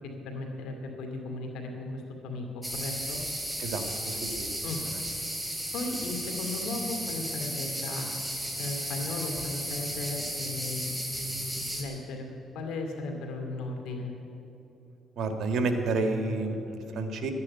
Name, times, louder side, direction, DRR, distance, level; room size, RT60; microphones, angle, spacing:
voice 1, 0.2-3.2 4.6-4.8 5.7-8.1 8.6-12.3 12.5-14.1, left 2 dB, 90° left, 3 dB, 2.3 m, -36 dB
sound 1, 2.6-11.8, equal, 5° right, 2.5 m, -34 dB
voice 2, 3.6-4.5 15.2-17.3, right 3 dB, 70° right, 6 dB, 1.7 m, -30 dB
12.0 x 9.8 x 9.9 m, 3.0 s
cardioid pair, 90°, 0 cm